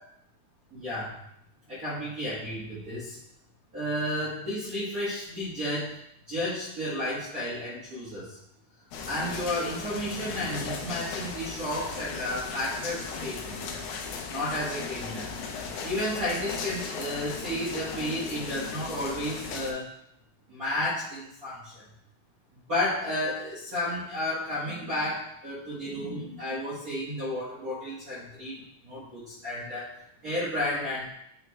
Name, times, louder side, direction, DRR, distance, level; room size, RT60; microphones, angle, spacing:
voice 1, 0.7-1.1 1.7-3.2 3.7-6.0 6.3-8.4 9.1-13.7 14.3-15.3 15.8-19.9 20.5-21.8 22.7-31.1, left 1 dB, 75° right, -10 dB, 0.8 m, -32 dB
sound 1, 8.9-19.7, left 5 dB, 75° left, 2.0 m, -37 dB
8.7 x 3.1 x 3.4 m, 0.76 s
omnidirectional pair, 4.0 m